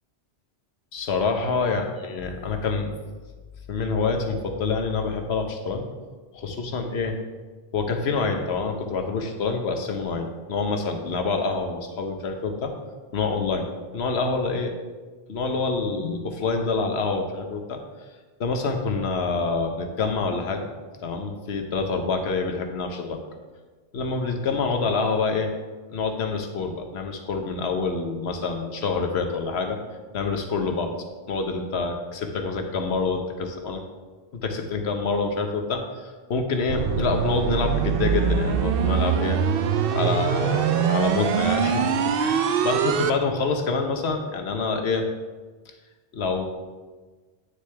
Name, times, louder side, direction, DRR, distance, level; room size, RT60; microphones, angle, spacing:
voice 1, 0.9-2.9 3.7-5.8 6.3-7.1 7.7-12.7 13.1-13.7 13.9-14.7 15.3-17.8 18.4-20.7 21.0-23.2 23.9-25.5 25.9-29.8 30.1-30.9 31.3-33.8 34.3-39.4 39.9-45.0 46.1-46.4, left 4 dB, 80° left, 4 dB, 1.2 m, -26 dB
sound 1, 36.7-43.1, right 7 dB, 65° right, 0.7 m, -23 dB
9.4 x 6.5 x 3.4 m, 1.3 s
omnidirectional pair, 1.1 m